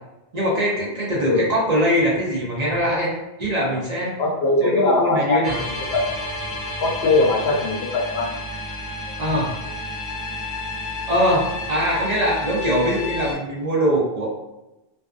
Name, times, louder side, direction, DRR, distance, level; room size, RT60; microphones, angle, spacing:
voice 1, 0.3-3.1 3.4-4.1 4.6-5.6 9.2-9.6 11.0-14.2, equal, 45° right, -4 dB, 0.7 m, -22 dB
voice 2, 4.2-5.4 5.9-6.0 6.8-8.3, left 2 dB, 85° left, 1 dB, 0.8 m, -20 dB
sound 1, 5.4-13.3, left 2 dB, 20° left, 0.7 m, -31 dB
2.6 x 2.3 x 2.3 m, 0.97 s
omnidirectional pair, 1.0 m